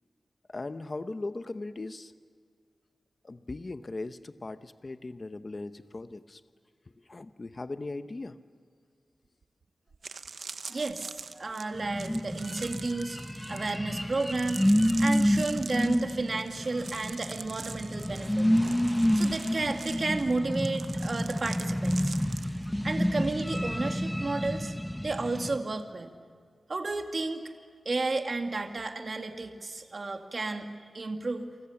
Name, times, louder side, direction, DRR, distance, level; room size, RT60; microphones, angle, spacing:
voice 1, 0.5-2.1 3.2-6.4 7.0-8.4, left 2 dB, 35° left, 11 dB, 0.8 m, -38 dB
sound 1, 9.4-9.5 9.9-23.4 23.7-24.0, right 5 dB, 75° right, 1.0 m, -44 dB
voice 2, 10.7-13.2 13.5-14.7 15.0-18.5 19.1-22.1 22.8-24.7 25.0-26.1 26.7-27.4 27.9-30.7 30.9-31.5, right 3 dB, 45° right, 5 dB, 2.0 m, -32 dB
sound 2, 11.7-25.6, equal, 5° left, 1.0 m, -29 dB
30.0 x 24.0 x 7.1 m, 2.1 s
wide cardioid pair, 125°, 0 cm